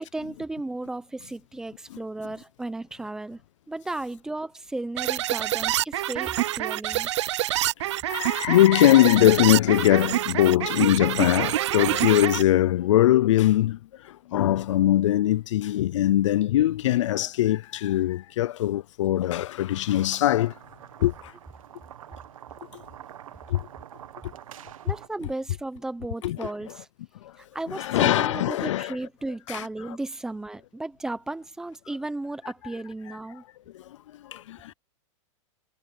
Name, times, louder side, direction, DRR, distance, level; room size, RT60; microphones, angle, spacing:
voice 1, 0.0-3.4 3.7-7.1 24.6-26.9 27.4-33.4, right 2 dB, 5° right, 0.8 m, -35 dB
sound 1, 5.0-12.4, right 14 dB, 60° right, 0.5 m, -27 dB
voice 2, 8.1-20.6 21.0-21.3 22.7-22.8 23.5-23.7 26.2-26.7 27.2-27.3 27.7-29.0 29.5-30.0 33.7-34.7, left 13 dB, 65° left, 0.4 m, -22 dB
sound 2, 19.9-25.1, right 11 dB, 90° right, 1.5 m, -46 dB
supercardioid pair, 170°, 17 cm